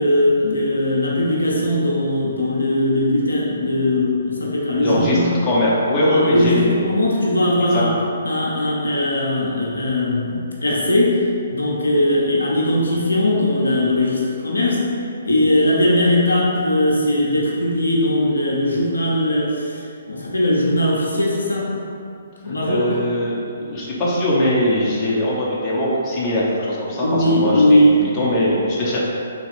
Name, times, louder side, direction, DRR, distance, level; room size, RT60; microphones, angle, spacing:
voice 1, 0.0-5.5 6.0-7.9 8.2-14.9 15.2-21.7 22.4-22.8 27.0-27.9, left 1 dB, 75° left, -4 dB, 0.6 m, -19 dB
voice 2, 4.8-6.8 7.7-7.8 22.4-29.0, left 1 dB, 25° left, -6 dB, 0.6 m, -21 dB
3.5 x 2.3 x 3.5 m, 2.5 s
figure-of-eight pair, 130°, 0 cm